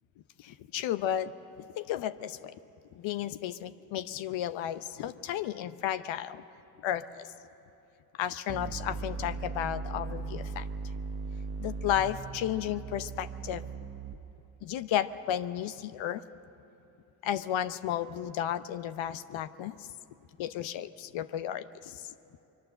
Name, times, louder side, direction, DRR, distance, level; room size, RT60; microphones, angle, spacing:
voice 1, 0.4-1.3 1.8-2.5 2.9-6.4 6.8-7.3 8.2-10.7 11.6-13.6 14.6-16.2 17.2-19.7 20.4-22.1, left 11 dB, 75° left, 12 dB, 0.8 m, -33 dB
sound 1, 8.5-14.5, right 4 dB, 30° right, 1.0 m, -38 dB
24.5 x 23.0 x 7.9 m, 2.8 s
supercardioid pair, 50°, 46 cm